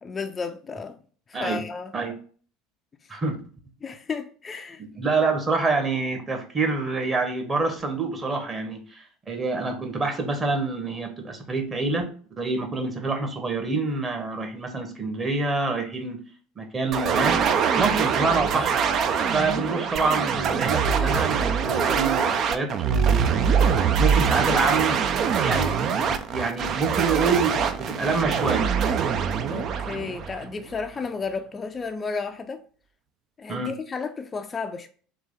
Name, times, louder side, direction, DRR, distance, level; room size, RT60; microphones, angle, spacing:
voice 1, 0.0-1.0 1.3-1.9 3.8-4.8 29.5-32.6 33.4-34.9, left 4 dB, 25° left, 0.4 m, -32 dB
voice 2, 4.9-16.2 16.6-17.4 17.8-18.7 19.3-23.5 24.0-25.0 25.4-28.7 33.5-33.7, right 3 dB, 25° right, 1.1 m, -27 dB
sound 1, 16.9-30.8, right 7 dB, 45° right, 0.4 m, -23 dB
4.0 x 3.0 x 3.8 m
hypercardioid pair, 75°, 0 cm